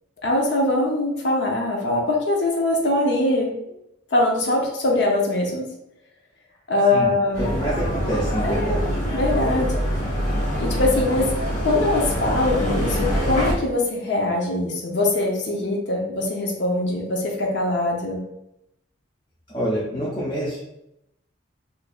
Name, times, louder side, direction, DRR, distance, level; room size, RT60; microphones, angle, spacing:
voice 1, 0.2-3.5 4.1-5.6 6.7-7.5 8.4-8.8 9.1-9.7 10.6-11.3 11.6-18.2, left 2 dB, 65° left, -1 dB, 0.7 m, -22 dB
voice 2, 6.9-8.9 19.5-20.6, equal, 25° left, -7 dB, 0.6 m, -27 dB
sound 1, 7.3-13.5, equal, 40° left, 1.0 m, -24 dB
4.5 x 2.6 x 2.3 m, 0.84 s
head